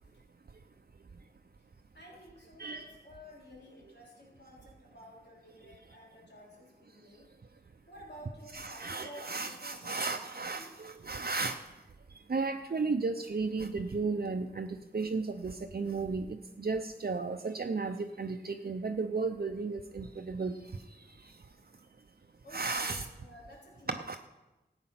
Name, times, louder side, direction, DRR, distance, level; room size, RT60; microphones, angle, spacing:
voice 1, 1.9-7.3 7.9-10.7 22.4-24.2, left 1 dB, 70° left, -4 dB, 3.9 m, -52 dB
voice 2, 8.5-11.6 12.3-16.3 16.6-20.5 22.5-23.0 23.9-24.2, right 4 dB, 60° right, 6 dB, 0.6 m, -34 dB
13.5 x 8.8 x 5.8 m, 1.0 s
wide cardioid pair, 45°, 18 cm